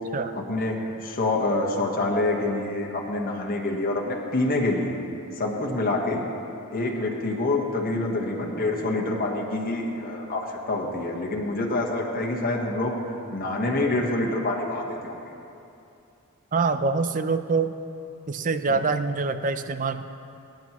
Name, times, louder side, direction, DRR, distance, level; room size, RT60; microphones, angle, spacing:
voice 1, 0.3-4.9 5.4-6.2 6.7-13.0 13.3-15.2, left 2 dB, 40° left, -1 dB, 1.3 m, -26 dB
voice 2, 16.5-17.8 18.3-20.0, right 4 dB, 35° right, 10 dB, 0.5 m, -25 dB
23.5 x 10.5 x 3.1 m, 2.8 s
head